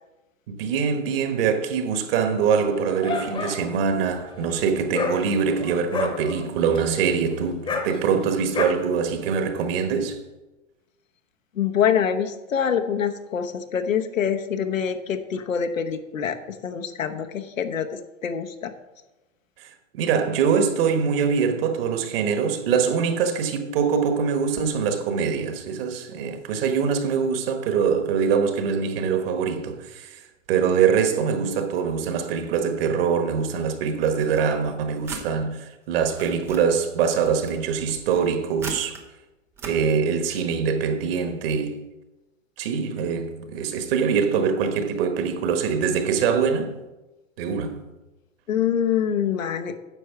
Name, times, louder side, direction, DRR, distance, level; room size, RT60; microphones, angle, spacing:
voice 1, 0.5-10.2 19.6-19.7 19.9-30.2 30.5-39.0 39.6-41.8 42.6-46.8 47.4-47.8, right 6 dB, 45° right, 1.4 m, -23 dB
Dog, 2.6-8.6, left 4 dB, 15° left, 0.9 m, -32 dB
voice 2, 11.5-16.4 16.6-18.7 48.5-49.8, left 8 dB, 90° left, 1.0 m, -25 dB
sound 1, 34.2-35.3 35.9-36.7 37.2-39.0 39.5-39.8, right 4 dB, 5° right, 0.3 m, -40 dB
9.6 x 6.5 x 4.7 m
hypercardioid pair, 130°, 39 cm